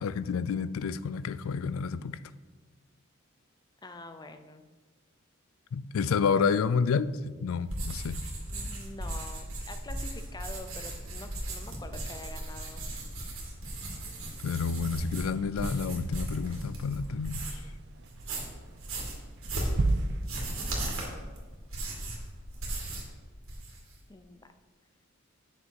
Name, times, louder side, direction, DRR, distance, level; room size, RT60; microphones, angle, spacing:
voice 1, 0.0-2.2 5.7-8.2 14.4-17.4, left 5 dB, 80° left, 0.4 m, -29 dB
voice 2, 3.8-4.6 8.5-12.8 24.1-24.5, left 2 dB, 20° left, 0.5 m, -46 dB
sound 1, 7.6-17.7 18.1-23.1 23.4-23.9, right 1 dB, 85° right, 2.4 m, -37 dB
sound 2, 9.9-20.4, right 2 dB, 55° right, 0.5 m, -39 dB
8.9 x 6.6 x 4.5 m
head